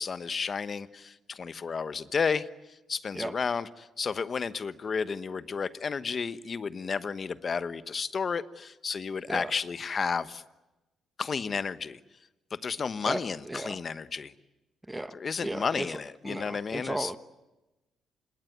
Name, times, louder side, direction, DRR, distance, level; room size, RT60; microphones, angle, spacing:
voice 1, 0.0-10.4 11.2-12.0 12.5-14.3 15.1-17.1, left 5 dB, 40° left, 14 dB, 1.1 m, -32 dB
voice 2, 13.1-13.8 14.9-16.0 16.2-17.2, right 1 dB, 10° right, 13 dB, 1.3 m, -35 dB
26.5 x 21.5 x 9.5 m, 1.0 s
cardioid pair, 90°, 0 cm